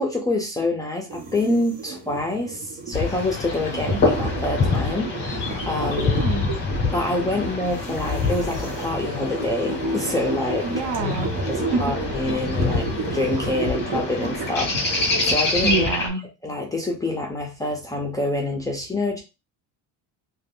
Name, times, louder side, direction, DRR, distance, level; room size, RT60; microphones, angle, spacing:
voice 1, 0.0-6.3 6.9-10.7 11.5-15.9 16.4-19.2, left 2 dB, 10° left, -1 dB, 0.3 m, -26 dB
sound 1, 1.1-15.3, right 2 dB, 80° right, 1.0 m, -32 dB
sound 2, 2.9-16.1, left 3 dB, 30° left, 0.8 m, -27 dB
voice 2, 3.7-4.0 6.1-6.5 10.6-11.3 11.7-12.0 15.6-16.2, right 4 dB, 60° right, 5 dB, 0.8 m, -26 dB
sound 3, 4.4-12.3, right 1 dB, 30° right, 0.8 m, -34 dB
2.4 x 2.2 x 3.5 m, 0.27 s
cardioid pair, 155°, 38 cm